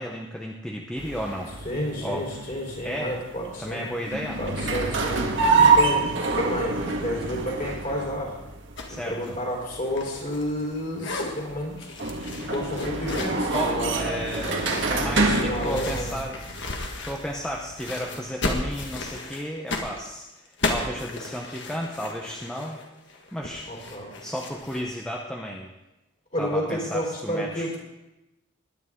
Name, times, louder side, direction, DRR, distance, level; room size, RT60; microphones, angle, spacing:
voice 1, 0.0-1.5 2.0-2.2 2.8-3.1 3.6-4.4 8.9-9.4 13.5-16.4 17.0-22.8 23.3-23.7 24.2-25.7 26.4-27.8, equal, 5° left, -1 dB, 0.8 m, -33 dB
sound 1, 1.0-18.0, right 3 dB, 55° right, 1.6 m, -27 dB
voice 2, 1.6-3.9 4.4-8.3 8.9-11.9 12.4-14.3 15.1-16.2 18.0-18.2 23.7-24.1 26.3-27.8, equal, 35° left, -2 dB, 4.0 m, -31 dB
sound 2, 8.8-9.0 9.2-10.7 10.9-11.3 11.8-13.4 14.2-17.5 17.8-24.8, left 2 dB, 55° left, 1.7 m, -34 dB
20.5 x 10.0 x 3.7 m, 0.98 s
head